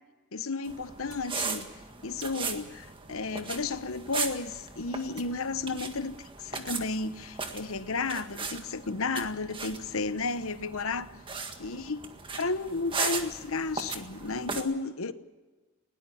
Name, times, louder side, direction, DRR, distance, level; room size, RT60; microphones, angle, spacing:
voice 1, 0.3-1.7 2.0-11.1 11.6-15.1, left 3 dB, 80° left, 1.0 m, -33 dB
sound 1, 0.7-14.6, right 4 dB, 25° right, 1.7 m, -38 dB
20.5 x 19.0 x 7.0 m
head